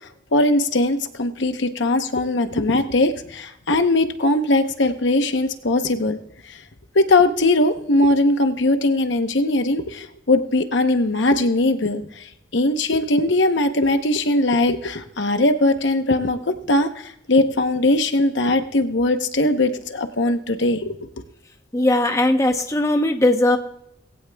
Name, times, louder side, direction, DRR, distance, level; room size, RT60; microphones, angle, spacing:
voice 1, 0.3-6.2 6.9-12.3 12.5-16.9 17.3-21.0, left 2 dB, 65° left, 8 dB, 0.9 m, -20 dB
voice 2, 21.7-23.6, left 1 dB, 15° left, 5 dB, 0.8 m, -18 dB
19.0 x 16.5 x 2.3 m, 0.77 s
head